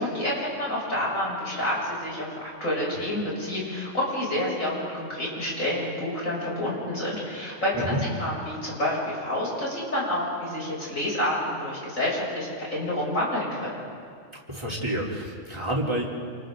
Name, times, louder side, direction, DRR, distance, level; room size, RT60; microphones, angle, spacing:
voice 1, 0.0-7.7 8.2-13.7, left 1 dB, 90° left, -5 dB, 7.8 m, -28 dB
voice 2, 14.5-16.1, right 1 dB, 20° right, -4 dB, 3.7 m, -28 dB
29.5 x 28.5 x 3.9 m, 2.2 s
omnidirectional pair, 1.3 m